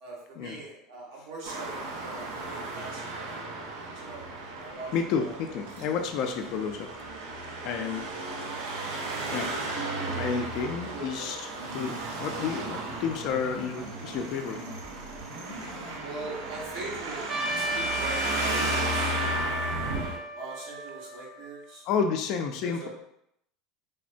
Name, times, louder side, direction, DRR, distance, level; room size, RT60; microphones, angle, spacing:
voice 1, 0.0-3.3 4.0-4.3 4.6-5.4 8.0-8.6 10.9-11.3 16.0-17.2 17.6-19.2 19.6-21.8 22.6-22.9, right 3 dB, 70° right, -3 dB, 1.0 m, -42 dB
Traffic noise roadway noise, 1.5-20.2, right 2 dB, 90° right, 0.5 m, -35 dB
voice 2, 4.9-6.9 7.6-8.1 9.3-9.5 10.1-11.4 11.7-14.6 21.9-22.9, left 6 dB, 55° left, 5 dB, 0.4 m, -30 dB
sound 1, 11.6-17.9, right 1 dB, 45° right, 1.3 m, -44 dB
Trumpet, 17.3-21.7, right 1 dB, 15° right, 0.5 m, -33 dB
3.4 x 2.1 x 2.5 m, 0.75 s
supercardioid pair, 130°, 0 cm